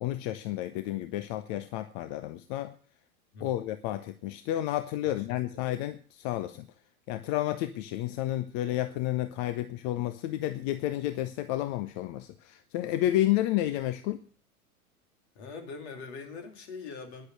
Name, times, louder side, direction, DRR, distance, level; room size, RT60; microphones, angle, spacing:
voice 1, 0.0-2.7 3.4-6.7 7.1-14.3, left 14 dB, 30° left, 0.7 m, -31 dB
voice 2, 3.3-3.6 5.0-5.7 15.3-17.3, left 4 dB, 45° left, 3.1 m, -43 dB
10.5 x 8.1 x 9.2 m
figure-of-eight pair, 95°, 43 cm